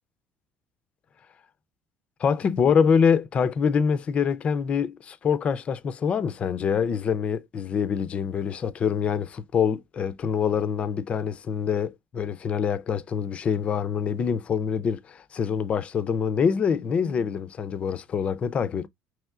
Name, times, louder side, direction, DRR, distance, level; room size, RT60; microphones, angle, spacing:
voice 1, 2.2-18.9, left 6 dB, 25° left, 0.3 m, -25 dB
5.4 x 3.0 x 2.3 m
cardioid pair, 175°, 5 cm